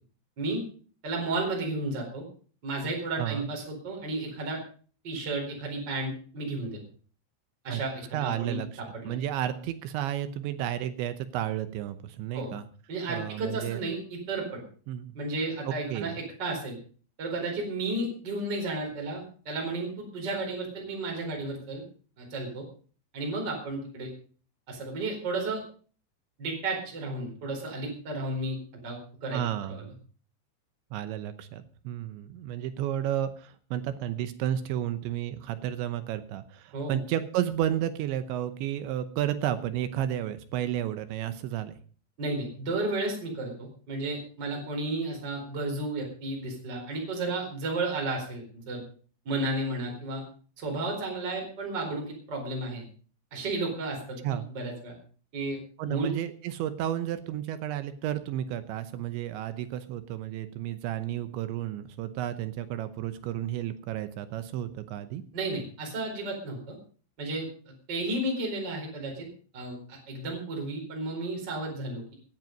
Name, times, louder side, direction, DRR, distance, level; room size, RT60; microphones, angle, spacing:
voice 1, 1.0-2.3 2.6-4.6 5.0-6.8 7.6-8.6 8.9-9.2 12.3-12.5 12.9-14.6 15.1-16.8 17.2-21.8 22.2-22.7 23.1-24.1 24.7-25.6 26.4-28.6 28.8-29.4 29.7-29.8 36.7-37.0 42.2-48.8 49.2-50.2 50.6-52.8 53.3-54.9 55.3-56.1 65.3-66.7 67.2-69.3 69.5-72.1, right 2 dB, 20° right, 0 dB, 4.4 m, -33 dB
voice 2, 8.1-8.7 9.0-12.6 13.1-13.8 14.9-15.1 15.7-16.2 29.3-29.9 30.9-41.8 54.2-54.5 55.8-65.2, right 11 dB, 75° right, 11 dB, 3.0 m, -32 dB
17.0 x 11.0 x 5.3 m, 0.42 s
omnidirectional pair, 5.8 m